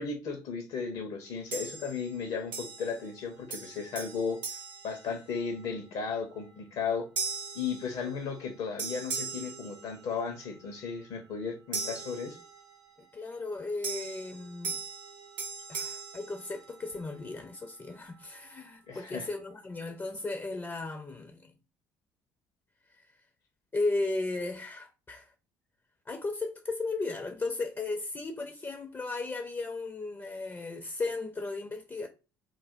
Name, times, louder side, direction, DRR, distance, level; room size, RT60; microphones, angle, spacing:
voice 1, 0.0-4.4 4.8-7.1 7.5-12.4 18.9-19.3, left 5 dB, 65° left, 0.7 m, -35 dB
sound 1, 1.5-2.2 2.5-3.2 3.5-5.7 6.2-6.5 7.2-8.5 8.8-10.4 11.7-12.9 13.8-17.1, right 5 dB, 80° right, 0.7 m, -39 dB
voice 2, 13.1-14.8 15.7-21.5 23.0-23.1 23.7-25.3 26.1-32.1, left 3 dB, 20° left, 0.4 m, -35 dB
3.2 x 2.1 x 2.5 m
hypercardioid pair, 55°, 11 cm